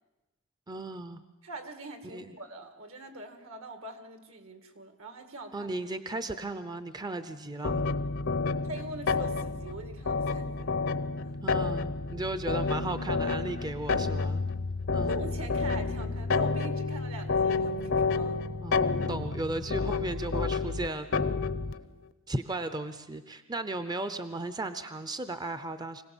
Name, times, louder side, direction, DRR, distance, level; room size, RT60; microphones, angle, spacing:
voice 1, 0.7-1.2 2.1-2.3 5.5-7.8 11.4-14.4 14.9-15.1 18.6-21.4 22.3-26.0, right 2 dB, 20° right, 10 dB, 0.6 m, -35 dB
voice 2, 1.4-5.7 8.6-10.8 11.2-11.3 12.1-12.3 15.0-18.4 19.2-19.3, right 2 dB, 70° right, 6 dB, 2.2 m, -43 dB
sound 1, 7.6-21.8, left 4 dB, 65° left, 0.8 m, -30 dB
25.0 x 17.5 x 7.1 m, 1.1 s
head